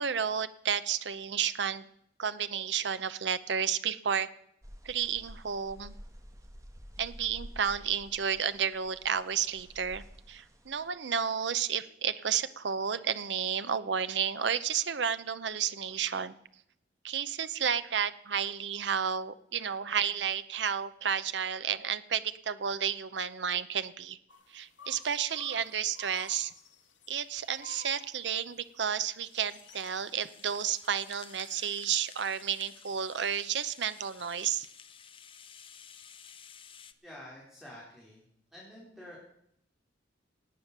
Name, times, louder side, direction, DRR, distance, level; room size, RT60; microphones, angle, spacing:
voice 1, 0.0-1.9 2.2-4.3 4.8-6.0 7.0-16.3 17.0-24.2 24.5-26.5 27.1-34.7, right 8 dB, 70° right, 13 dB, 0.7 m, -32 dB
sound 1, 4.6-10.9, equal, 15° right, 1.5 m, -50 dB
sound 2, 24.3-31.5, left 5 dB, 85° left, 2.1 m, -54 dB
Rattle (instrument), 29.2-36.9, left 7 dB, 30° left, 0.7 m, -53 dB
voice 2, 37.0-38.2 38.5-39.2, left 1 dB, ahead, -5 dB, 3.9 m, -48 dB
18.0 x 8.9 x 6.7 m, 0.72 s
head